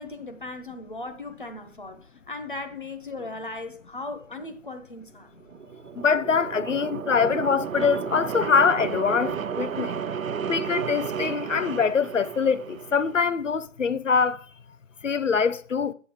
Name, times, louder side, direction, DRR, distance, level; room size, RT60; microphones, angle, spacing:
voice 1, 0.0-5.3, left 2 dB, 40° left, 1.1 m, -37 dB
Dark Rise Upgrading, 5.4-13.3, right 7 dB, 80° right, 0.5 m, -32 dB
voice 2, 6.0-10.0 10.5-14.4 15.0-15.9, left 6 dB, 65° left, 0.7 m, -24 dB
9.9 x 6.9 x 4.9 m
figure-of-eight pair, 165°, 40 cm